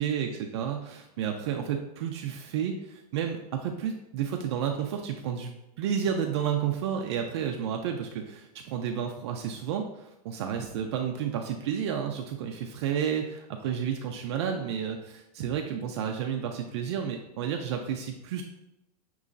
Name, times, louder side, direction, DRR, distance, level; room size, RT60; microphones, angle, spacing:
voice 1, 0.0-18.4, right 8 dB, 45° right, 3 dB, 0.4 m, -31 dB
6.5 x 3.0 x 2.5 m, 0.88 s
supercardioid pair, 160°, 20 cm